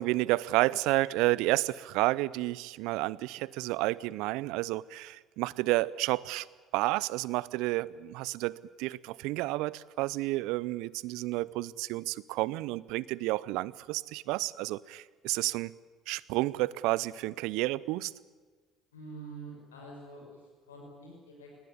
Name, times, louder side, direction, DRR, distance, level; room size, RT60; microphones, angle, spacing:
voice 1, 0.0-6.5 6.7-15.7 16.1-18.1, right 19 dB, 70° right, 22 dB, 0.6 m, -31 dB
voice 2, 18.9-21.5, right 3 dB, 90° left, -1 dB, 5.7 m, -46 dB
21.0 x 18.5 x 10.0 m, 1.4 s
hypercardioid pair, 55°, 0 cm